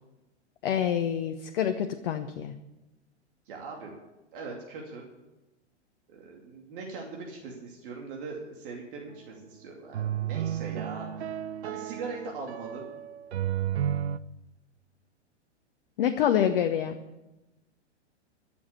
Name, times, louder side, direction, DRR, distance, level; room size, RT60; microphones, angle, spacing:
voice 1, 0.6-2.5 16.0-17.0, left 9 dB, 50° left, 7 dB, 1.0 m, -26 dB
voice 2, 3.5-3.9 4.3-5.0 6.1-11.4 11.6-12.9, right 4 dB, 50° right, -1 dB, 2.7 m, -40 dB
sound 1, 9.1-9.2 9.9-14.2, right 10 dB, 65° right, 0.6 m, -32 dB
13.5 x 7.2 x 9.9 m, 1.0 s
figure-of-eight pair, 105°, 35 cm